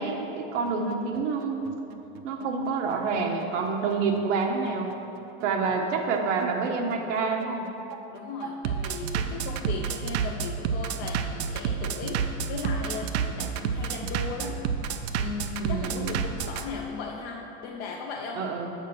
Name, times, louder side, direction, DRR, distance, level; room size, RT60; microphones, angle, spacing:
voice 1, 0.0-1.7 2.2-4.9 5.4-7.7 15.6-16.2 18.3-18.7, right 4 dB, 85° right, 3 dB, 1.1 m, -28 dB
Bass drum, 0.7-16.6, right 7 dB, 60° right, 0.5 m, -31 dB
voice 2, 8.1-14.7 15.2-18.4, left 5 dB, 30° left, -1 dB, 0.3 m, -37 dB
6.6 x 4.8 x 6.5 m, 2.9 s
supercardioid pair, 155°, 36 cm